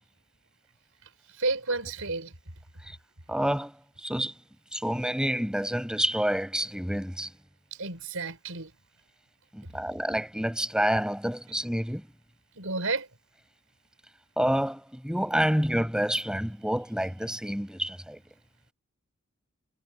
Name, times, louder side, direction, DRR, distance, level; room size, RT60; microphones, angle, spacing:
voice 1, 1.3-2.3 7.7-8.7 12.6-13.1, right 3 dB, 70° right, 5.5 m, -31 dB
voice 2, 3.3-4.3 4.7-7.3 9.5-12.1 14.4-18.2, equal, 5° right, 7.4 m, -28 dB
head